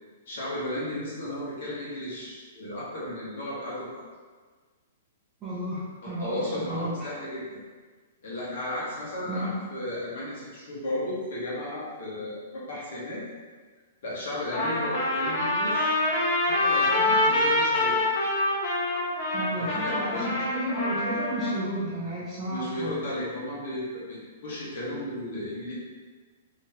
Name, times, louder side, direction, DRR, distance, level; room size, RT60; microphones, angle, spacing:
voice 1, 0.3-3.9 6.0-7.6 8.2-13.2 14.0-15.9 16.4-18.0 19.6-20.3 22.5-25.7, left 1 dB, 55° left, -7 dB, 1.3 m, -34 dB
voice 2, 5.4-7.1 9.2-9.5 19.3-23.0, equal, 10° right, -10 dB, 0.7 m, -32 dB
Trumpet, 14.5-21.5, left 2 dB, 25° left, 0.7 m, -25 dB
3.6 x 3.0 x 2.8 m, 1.4 s
hypercardioid pair, 180°, 0 cm